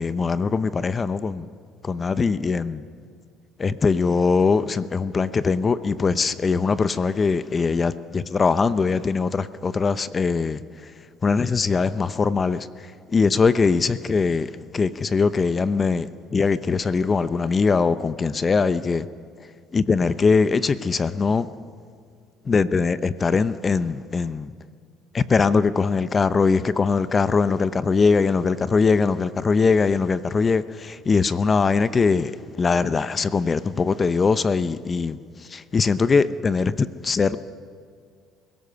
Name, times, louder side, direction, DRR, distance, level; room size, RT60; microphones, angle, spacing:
voice 1, 0.0-1.5 1.8-2.8 3.6-10.6 11.2-12.7 13.1-19.1 19.7-21.5 22.5-24.5 25.1-32.3 32.6-35.2 35.5-37.4, left 4 dB, 30° left, 0.7 m, -21 dB
23.5 x 16.5 x 6.9 m
supercardioid pair, 95°, 0 cm